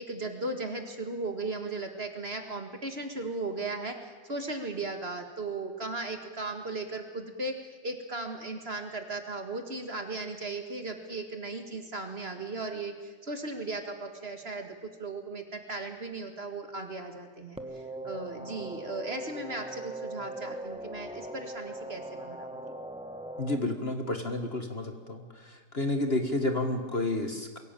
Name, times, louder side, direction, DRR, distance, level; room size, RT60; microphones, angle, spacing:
voice 1, 0.0-7.5 7.8-22.5, right 3 dB, 35° right, 5 dB, 2.1 m, -37 dB
sound 1, 17.6-23.6, right 1 dB, 5° right, 1.1 m, -40 dB
voice 2, 23.4-25.2 25.7-27.6, left 2 dB, 35° left, 6 dB, 1.8 m, -30 dB
23.0 x 17.0 x 9.0 m, 1.5 s
omnidirectional pair, 1.9 m